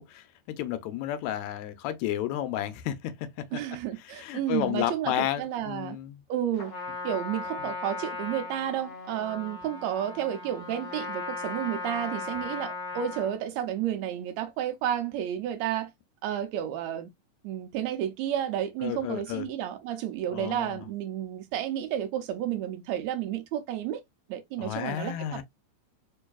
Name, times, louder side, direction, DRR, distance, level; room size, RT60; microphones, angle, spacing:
voice 1, 0.0-3.3 4.2-6.2 7.6-7.7 18.8-19.5 20.3-20.8 24.6-25.4, left 12 dB, 80° left, 1.8 m, -32 dB
voice 2, 3.5-6.0 6.3-6.7 7.0-15.9 16.2-17.1 17.4-24.0 24.3-25.4, right 10 dB, 80° right, 1.7 m, -31 dB
Trumpet, 6.5-13.4, left 3 dB, 40° left, 0.5 m, -37 dB
4.6 x 2.6 x 2.2 m
omnidirectional pair, 3.3 m